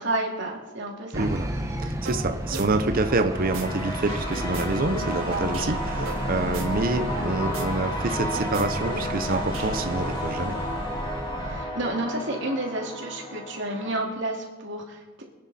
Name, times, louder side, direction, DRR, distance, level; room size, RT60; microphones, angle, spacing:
voice 1, 0.0-1.3 2.5-2.6 2.9-3.0 11.4-15.2, right 1 dB, 60° right, 0 dB, 2.8 m, -31 dB
sound 1, 1.1-11.6, right 1 dB, 15° right, 1.4 m, -32 dB
voice 2, 1.1-1.5 1.8-10.6, right 2 dB, 45° right, 8 dB, 0.8 m, -27 dB
sound 2, 2.1-2.2 2.5-3.6 3.9-7.3 7.5-7.6 7.9-10.0, right 3 dB, 85° right, 2.4 m, -36 dB
sound 3, 3.0-14.0, left 1 dB, 25° left, 2.8 m, -33 dB
25.5 x 9.8 x 4.3 m, 1.2 s
head